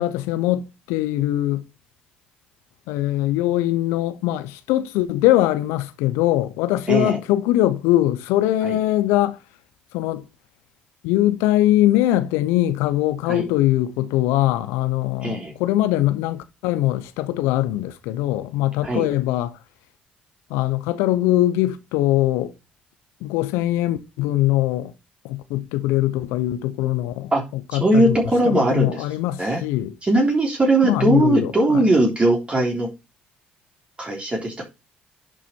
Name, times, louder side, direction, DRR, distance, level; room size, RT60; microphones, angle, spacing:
voice 1, 0.0-1.6 2.9-9.4 9.9-10.2 11.0-19.6 20.5-22.5 23.2-24.9 25.2-27.3 27.7-28.2 28.4-29.9 30.8-31.8, left 14 dB, 80° left, 0.6 m, -21 dB
voice 2, 6.9-7.2 8.6-8.8 13.3-13.5 15.2-15.6 18.8-19.1 27.3-27.4 27.7-29.0 29.4-29.6 30.0-32.9 34.0-34.6, right 2 dB, 25° right, 3.2 m, -20 dB
11.0 x 4.2 x 4.5 m
hypercardioid pair, 50°, 4 cm